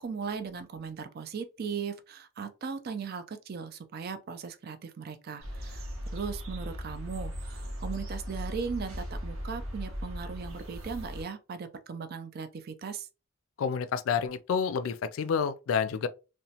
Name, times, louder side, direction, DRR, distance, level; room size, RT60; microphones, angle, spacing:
voice 1, 0.0-13.1, right 5 dB, 50° right, 0.4 m, -38 dB
sound 1, 5.4-11.2, equal, 85° right, 0.9 m, -38 dB
voice 2, 13.6-16.1, left 6 dB, 85° left, 0.3 m, -29 dB
2.9 x 2.1 x 2.7 m
head